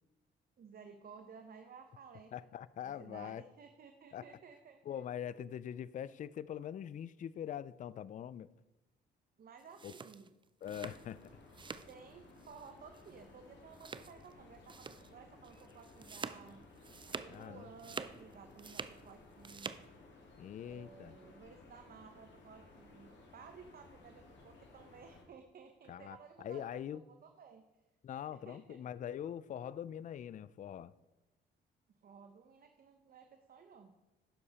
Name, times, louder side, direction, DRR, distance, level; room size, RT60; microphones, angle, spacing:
voice 1, 0.6-2.3 2.8-5.0 9.4-10.3 11.9-16.7 17.0-19.7 20.6-26.8 27.2-27.6 28.3-28.8 32.0-33.9, right 6 dB, 50° right, 0.8 m, -55 dB
voice 2, 2.3-3.5 4.1-4.3 4.8-8.5 9.8-9.9 10.6-11.4 17.3-17.6 20.4-21.2 25.9-27.0 28.0-30.9, left 9 dB, 40° left, 0.4 m, -43 dB
sound 1, 9.6-12.0 12.3-12.7 12.9-13.1 13.7-14.3 14.7-15.1 15.4-17.4 17.7-19.0 19.3-19.9, right 5 dB, 25° right, 0.5 m, -46 dB
sound 2, 10.6-25.2, left 2 dB, 65° left, 2.4 m, -59 dB
10.0 x 6.7 x 4.2 m
cardioid pair, 90°, 20 cm